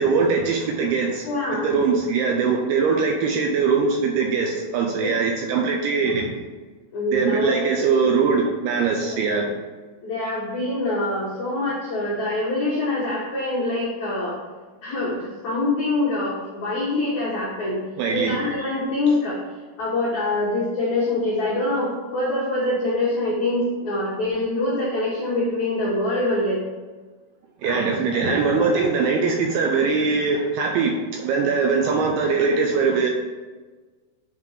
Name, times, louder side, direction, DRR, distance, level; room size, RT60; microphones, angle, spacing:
voice 1, 0.0-6.3 7.1-9.5 18.0-18.4 19.1-19.2 27.6-33.1, right 5 dB, 80° right, 1 dB, 2.4 m, -22 dB
voice 2, 1.3-1.6 5.0-5.2 6.9-7.8 9.1-9.2 10.0-14.4 14.8-17.8 18.1-19.4 19.8-26.6 27.7-28.7, left 2 dB, 80° left, -6 dB, 1.6 m, -25 dB
7.4 x 3.7 x 4.8 m, 1.3 s
omnidirectional pair, 5.1 m